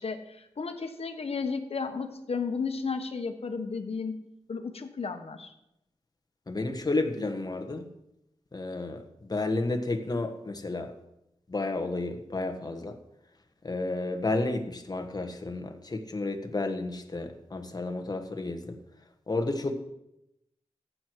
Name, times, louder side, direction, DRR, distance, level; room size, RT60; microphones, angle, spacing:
voice 1, 0.0-4.2 4.5-5.5, left 5 dB, 70° left, 6 dB, 1.2 m, -33 dB
voice 2, 6.5-7.9 8.5-10.9 11.5-13.0 13.6-18.8 19.3-19.7, left 2 dB, 40° left, 6 dB, 1.3 m, -31 dB
14.5 x 7.9 x 4.6 m, 0.84 s
wide cardioid pair, 95°, 11 cm